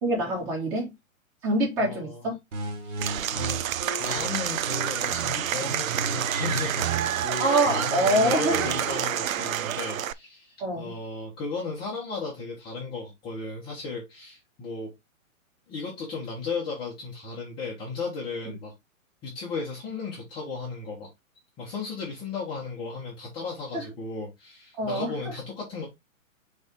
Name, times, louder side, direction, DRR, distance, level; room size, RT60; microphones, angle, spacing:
voice 1, 0.0-0.9 1.4-2.4 7.4-8.7 10.6-10.9 23.7-23.8 24.8-25.1, right 1 dB, 25° right, 3.6 m, -25 dB
voice 2, 1.8-2.3 2.8-3.0 3.3-3.6 4.0-7.0 7.3-14.9 15.7-18.7 19.2-21.1 21.6-25.8, left 4 dB, 10° left, 1.2 m, -35 dB
sound 1, 2.5-5.5 5.9-8.9, right 3 dB, 60° right, 2.4 m, -35 dB
Applause / Crowd, 3.0-10.1, right 10 dB, 75° right, 0.6 m, -29 dB
6.3 x 3.5 x 4.6 m
hypercardioid pair, 165°, 41 cm